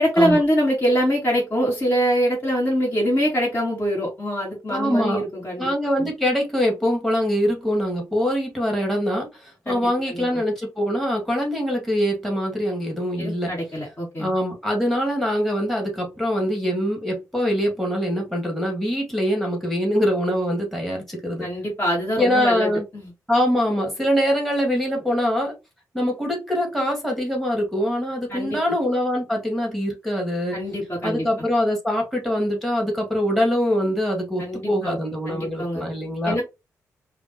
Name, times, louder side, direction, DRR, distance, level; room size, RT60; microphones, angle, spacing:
voice 1, 0.0-5.7 6.0-6.1 9.7-10.4 13.2-14.3 21.4-23.1 28.3-28.6 30.5-31.3 34.4-35.0 35.3-35.8 36.2-36.4, equal, 30° left, -3 dB, 2.3 m, -24 dB
voice 2, 4.7-5.2 5.6-13.5 14.2-21.5 22.2-22.8 23.3-25.5 25.9-30.6 31.0-36.4, equal, 5° left, 0 dB, 2.2 m, -23 dB
5.0 x 2.6 x 2.9 m, 0.25 s
supercardioid pair, 55°, 7 cm